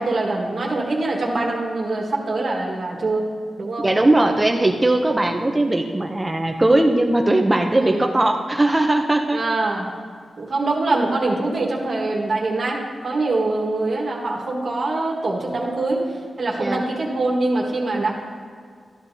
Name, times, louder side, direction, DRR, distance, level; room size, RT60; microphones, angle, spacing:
voice 1, 0.0-3.3 3.6-3.9 7.8-8.1 9.3-9.9 10.4-16.1 16.4-18.1, right 2 dB, 60° right, -2 dB, 1.6 m, -23 dB
voice 2, 3.8-9.4 16.6-16.9, right 2 dB, 20° right, 3 dB, 0.6 m, -19 dB
13.5 x 10.0 x 2.7 m, 2.1 s
wide cardioid pair, 95°, 0 cm